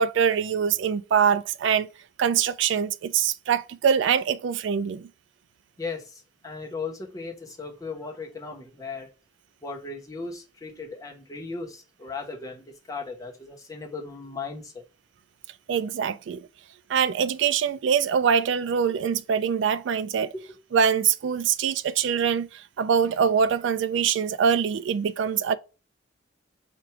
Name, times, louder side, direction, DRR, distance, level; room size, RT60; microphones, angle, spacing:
voice 1, 0.0-1.9 2.2-5.1 15.7-16.5 16.9-20.3 20.7-25.6, right 7 dB, 65° right, 0.3 m, -24 dB
voice 2, 5.8-9.1 9.6-14.8 20.3-20.4, left 4 dB, 20° left, 1.0 m, -37 dB
4.4 x 2.5 x 4.7 m
head